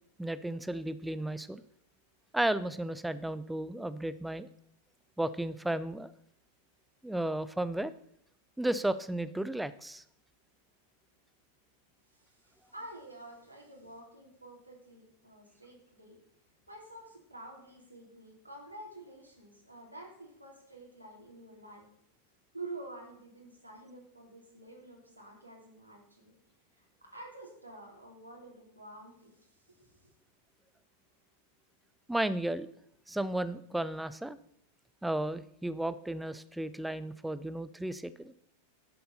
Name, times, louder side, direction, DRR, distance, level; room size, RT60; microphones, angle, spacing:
voice 1, 0.2-1.6 2.3-4.5 5.2-6.1 7.0-7.9 8.6-10.0 32.1-32.7 33.1-34.4 35.0-38.3, right 1 dB, 5° right, 14 dB, 0.6 m, -33 dB
voice 2, 12.1-16.2 16.7-21.9 22.5-26.3 26.7-30.1, right 2 dB, 85° right, -1 dB, 3.3 m, -49 dB
11.5 x 6.9 x 6.7 m, 0.71 s
figure-of-eight pair, 90°, 0 cm